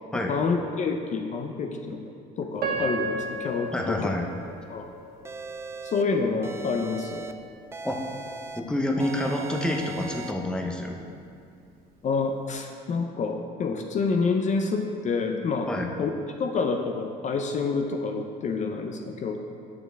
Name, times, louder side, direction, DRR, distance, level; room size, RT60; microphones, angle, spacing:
voice 1, 0.1-2.0 2.4-4.1 4.7-4.9 5.9-7.3 12.0-15.7 16.0-16.1 16.4-19.4, left 4 dB, 45° left, 3 dB, 0.6 m, -28 dB
Piano, 2.6-5.6 6.2-6.3 6.9-7.2, right 3 dB, 65° right, 1.1 m, -33 dB
voice 2, 3.7-4.3 7.8-8.0 8.6-11.0 15.7-15.9, left 1 dB, 5° left, 1 dB, 0.7 m, -28 dB
sound 1, 5.2-6.0 6.4-7.3 7.7-8.6 9.0-10.3, right 3 dB, 15° right, 0.3 m, -38 dB
8.7 x 6.3 x 3.4 m, 2.4 s
cardioid pair, 110°, 17 cm